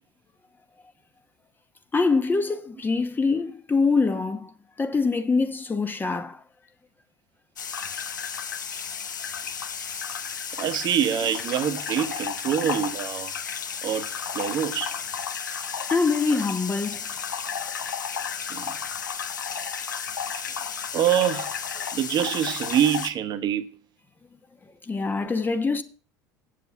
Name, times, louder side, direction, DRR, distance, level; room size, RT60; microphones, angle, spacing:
voice 1, 1.9-4.5 4.8-6.4 9.9-10.0 15.9-17.1 24.9-25.8, left 4 dB, 20° left, 1.0 m, -24 dB
sound 1, 7.6-23.1, left 7 dB, 90° left, 0.7 m, -33 dB
voice 2, 10.6-13.3 13.8-14.1 14.3-14.9 18.5-18.7 20.9-21.5 21.9-23.7, right 10 dB, 45° right, 1.1 m, -25 dB
8.0 x 7.6 x 7.0 m
hypercardioid pair, 75°, 10 cm